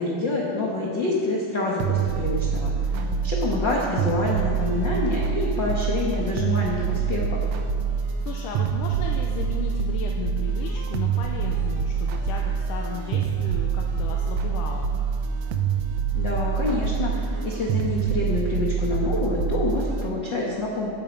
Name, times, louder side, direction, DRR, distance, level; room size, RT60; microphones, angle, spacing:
voice 1, 0.0-2.7 3.2-7.4 16.1-20.9, left 2 dB, 50° left, -3 dB, 1.3 m, -27 dB
sound 1, 1.8-20.1, right 6 dB, 75° right, 1.6 m, -26 dB
voice 2, 2.9-3.3 8.2-14.9, left 6 dB, 75° left, 1 dB, 2.2 m, -35 dB
19.0 x 8.8 x 5.3 m, 2.3 s
omnidirectional pair, 4.1 m